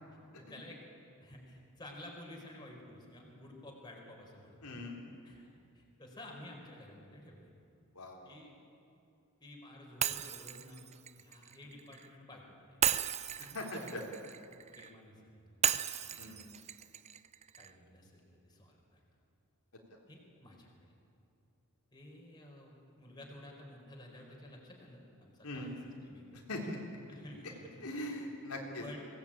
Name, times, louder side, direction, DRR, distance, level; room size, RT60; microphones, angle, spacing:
voice 1, 0.4-0.8 1.2-4.6 5.2-7.5 8.2-8.5 9.4-12.8 13.6-14.0 14.7-15.7 16.0-16.8 17.6-19.0 20.1-20.9 21.9-26.4 27.1-28.1 28.8-29.0, left 1 dB, 20° left, -1 dB, 4.6 m, -52 dB
voice 2, 4.6-5.0 8.0-8.2 13.4-14.1 16.2-16.4 25.4-25.7 26.5-26.8 27.8-28.8, left 1 dB, 80° left, -1 dB, 3.5 m, -40 dB
Shatter, 10.0-12.1 12.8-14.9 15.6-17.7, right 9 dB, 30° right, 0.6 m, -35 dB
22.5 x 18.5 x 8.9 m, 2.5 s
head